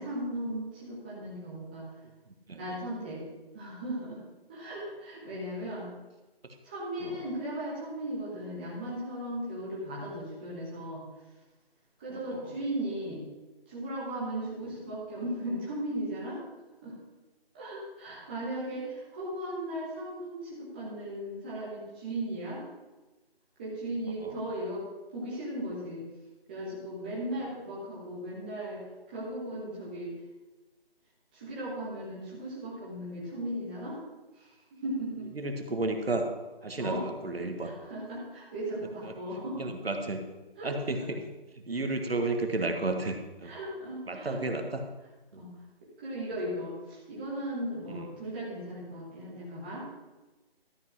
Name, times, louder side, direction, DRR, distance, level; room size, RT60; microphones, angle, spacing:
voice 1, 0.0-1.9 2.5-3.2 3.5-4.2 4.5-5.9 6.6-11.0 12.0-13.2 13.7-16.4 16.8-17.0 17.5-22.6 23.6-24.9 25.1-26.0 26.5-30.1 31.3-34.0 34.3-35.3 36.8-37.0 37.6-39.7 40.6-41.0 43.4-44.4 45.4-45.5 46.0-49.9, right 1 dB, 10° right, -7 dB, 1.3 m, -37 dB
voice 2, 35.4-36.3 36.6-37.7 39.6-40.3 40.6-41.2 41.7-43.5 44.1-44.8 45.3-45.4 47.9-48.1, right 2 dB, 75° right, 5 dB, 1.6 m, -32 dB
12.5 x 5.6 x 5.9 m, 1.1 s
figure-of-eight pair, 170°, 30 cm